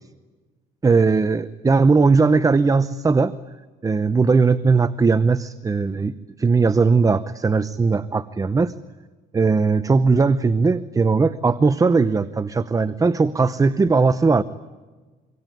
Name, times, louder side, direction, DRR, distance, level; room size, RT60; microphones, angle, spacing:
voice 1, 0.8-3.3 3.8-6.1 6.4-8.7 9.3-14.4, right 4 dB, 20° right, 14 dB, 0.8 m, -18 dB
26.0 x 24.5 x 9.3 m, 1.3 s
cardioid pair, 110°, 17 cm